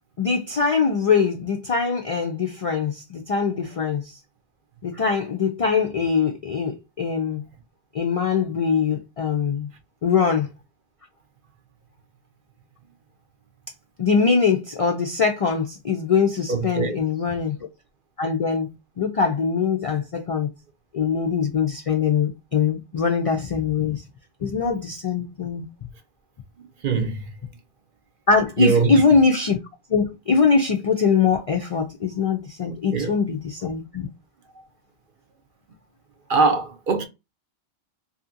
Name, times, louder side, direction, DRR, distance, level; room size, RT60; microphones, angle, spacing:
voice 1, 0.2-4.2 4.8-7.4 7.9-9.7 10.0-10.5 14.0-17.6 18.2-20.5 20.9-24.0 24.4-25.7 28.3-29.6 29.9-34.1, left 5 dB, 55° left, 0.4 m, -22 dB
voice 2, 16.5-17.0 26.8-27.3 28.6-29.0 32.7-33.1 36.3-37.0, right 4 dB, 55° right, 0.8 m, -22 dB
2.7 x 2.6 x 2.5 m
omnidirectional pair, 1.1 m